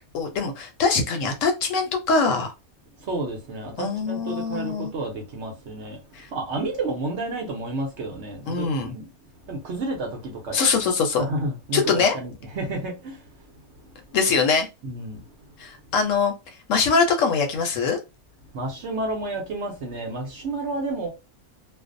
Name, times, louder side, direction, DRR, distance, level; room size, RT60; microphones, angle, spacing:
voice 1, 0.1-2.5 3.8-4.9 6.1-6.3 8.5-8.9 10.5-11.2 11.7-12.1 14.1-14.7 15.6-16.3 16.7-18.0, left 5 dB, 70° left, 0.9 m, -23 dB
voice 2, 3.0-6.0 6.3-9.1 9.4-10.6 11.2-13.3 14.8-15.3 18.5-21.1, right 2 dB, 60° right, 0.8 m, -31 dB
2.5 x 2.0 x 2.5 m
omnidirectional pair, 1.5 m